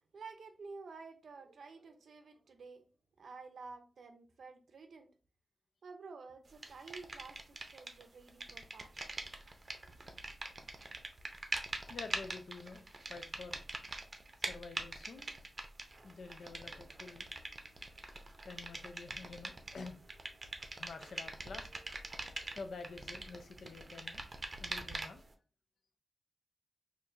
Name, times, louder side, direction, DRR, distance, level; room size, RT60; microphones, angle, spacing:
voice 1, 0.1-2.8 3.2-5.1 5.8-9.0 9.8-9.9, right 4 dB, 85° right, 0.5 m, -51 dB
sound 1, 6.6-8.0 8.3-25.3, right 2 dB, 40° right, 0.6 m, -44 dB
voice 2, 11.9-13.6 14.5-15.3 16.0-17.3 18.5-20.0 20.8-21.7 22.5-24.2 24.6-25.2, left 4 dB, 75° left, 0.5 m, -48 dB
4.3 x 2.6 x 2.5 m
wide cardioid pair, 90°, 0 cm